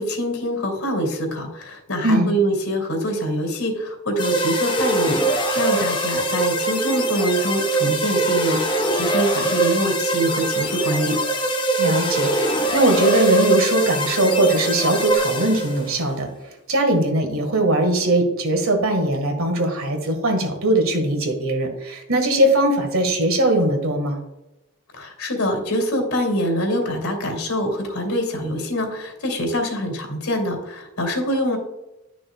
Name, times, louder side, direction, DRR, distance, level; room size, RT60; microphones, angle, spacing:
voice 1, 0.0-11.2 24.9-31.6, equal, 90° left, 1 dB, 2.7 m, -24 dB
sound 1, 4.2-15.9, right 2 dB, 20° left, 0.8 m, -22 dB
voice 2, 11.8-24.2, right 1 dB, 75° right, 4 dB, 1.7 m, -20 dB
11.5 x 6.3 x 2.3 m, 0.93 s
head